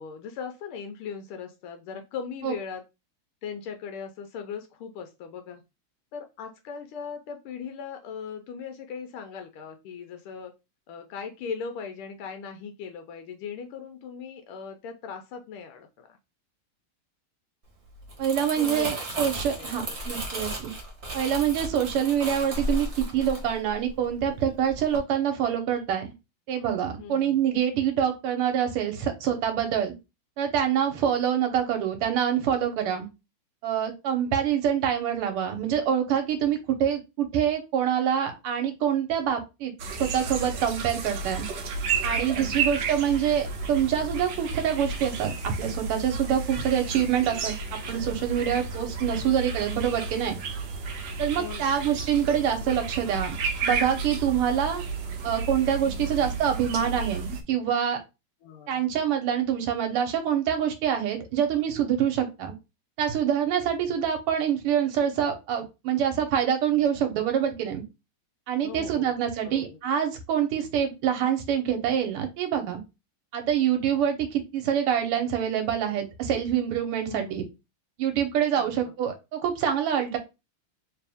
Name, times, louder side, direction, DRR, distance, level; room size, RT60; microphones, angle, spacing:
voice 1, 0.0-2.8 3.4-5.6 6.1-10.5 10.9-16.2 18.6-19.3 19.5-20.0 27.0-27.4 42.4-42.8 51.4-51.7 55.8-56.2 58.4-58.9 68.6-69.1 69.4-69.8 77.0-77.5 78.6-78.9, left 6 dB, 85° left, 6 dB, 1.5 m, -39 dB
Crumpling crinkling, 17.9-24.3 24.7-25.0, right 1 dB, 35° right, 1.3 m, -34 dB
voice 2, 18.2-20.7 21.1-26.1 26.5-29.9 30.4-33.1 33.6-41.5 42.0-47.6 47.9-50.4 51.2-53.4 53.6-54.8 55.2-58.0 58.7-62.5 63.0-67.8 68.5-72.8 73.3-77.4 78.0-80.2, right 9 dB, 90° right, 5 dB, 1.8 m, -26 dB
sound 1, 39.8-57.4, right 4 dB, 65° right, 1.3 m, -32 dB
3.4 x 3.2 x 3.4 m, 0.26 s
omnidirectional pair, 2.4 m